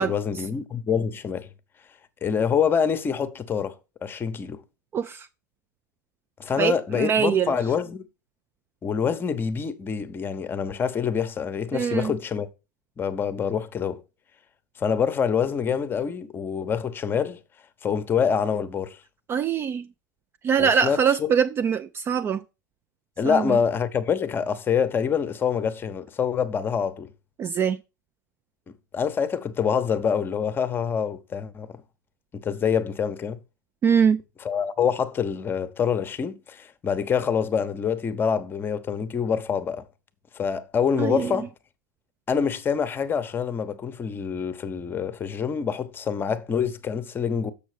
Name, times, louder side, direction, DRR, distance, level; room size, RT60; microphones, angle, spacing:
voice 1, 0.0-1.5 2.2-3.8 4.0-4.6 6.4-8.1 8.8-12.5 13.0-14.0 14.8-17.4 17.8-19.0 20.6-21.3 23.2-27.1 28.9-31.8 32.3-33.4 34.4-39.9 40.3-41.5 42.3-47.5, left 7 dB, 20° left, 0.8 m, -26 dB
voice 2, 4.9-5.3 6.6-7.5 11.7-12.1 19.3-19.9 20.4-22.4 23.2-23.6 27.4-27.8 33.8-34.2 41.0-41.4, right 7 dB, 25° right, 0.4 m, -23 dB
6.9 x 6.2 x 4.9 m
figure-of-eight pair, 95°, 10 cm